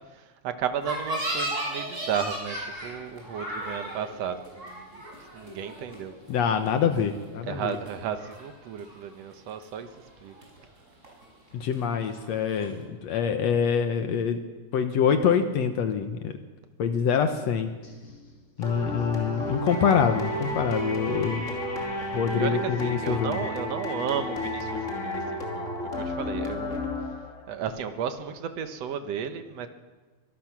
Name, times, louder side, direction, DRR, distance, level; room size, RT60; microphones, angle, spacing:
voice 1, 0.1-5.1 5.3-6.1 7.5-9.9 10.2-10.4 18.7-19.0 22.4-26.8 27.5-29.7, right 8 dB, 65° right, 8 dB, 2.1 m, -34 dB
sound 1, 0.8-7.4 7.6-8.4 8.8-9.3 9.6-10.8 11.0-12.8, right 1 dB, 20° right, 6.2 m, -35 dB
voice 2, 6.3-7.8 11.5-14.4 14.7-16.4 16.8-17.7 18.6-21.5 22.1-23.5, left 7 dB, 65° left, 7 dB, 2.1 m, -25 dB
sound 2, 17.8-23.5, left 2 dB, 45° left, 4.8 m, -49 dB
sound 3, 18.6-27.5, left 1 dB, 25° left, 2.7 m, -32 dB
24.0 x 18.0 x 6.1 m, 1.3 s
omnidirectional pair, 3.5 m